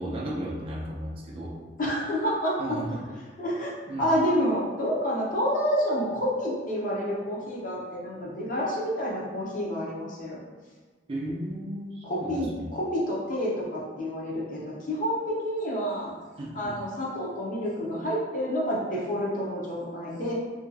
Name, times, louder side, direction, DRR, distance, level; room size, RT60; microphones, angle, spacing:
voice 1, 0.0-1.6 2.6-3.0 3.9-4.1 11.1-12.7 16.4-16.8, right 1 dB, 30° right, -3 dB, 0.3 m, -34 dB
voice 2, 1.8-2.6 3.4-10.4 12.0-16.1 16.5-20.3, equal, 50° left, -5 dB, 0.7 m, -29 dB
2.6 x 2.3 x 2.6 m, 1.4 s
head